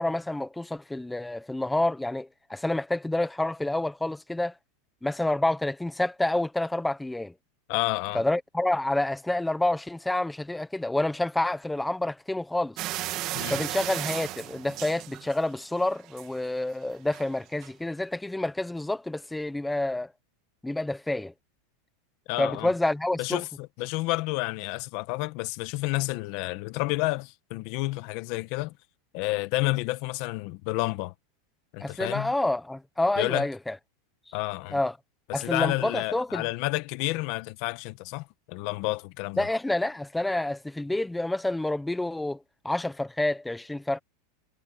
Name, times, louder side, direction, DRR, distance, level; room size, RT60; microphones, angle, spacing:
voice 1, 0.0-4.5 5.0-7.3 8.1-12.8 13.5-20.1 20.6-21.3 22.4-23.4 31.8-33.7 34.7-35.0 35.3-36.5 39.4-42.4 42.6-44.0, left 2 dB, 5° left, 1.1 m, -28 dB
voice 2, 7.7-8.2 13.3-13.6 22.3-22.7 23.2-23.4 23.8-28.7 29.1-31.1 31.7-32.3 33.2-33.5 34.3-34.8 35.3-39.5, left 21 dB, 45° left, 1.2 m, -30 dB
sound 1, 12.8-15.6 16.0-16.5 17.1-17.3 17.6-17.7, right 15 dB, 35° right, 1.7 m, -34 dB
supercardioid pair, 165°, 0 cm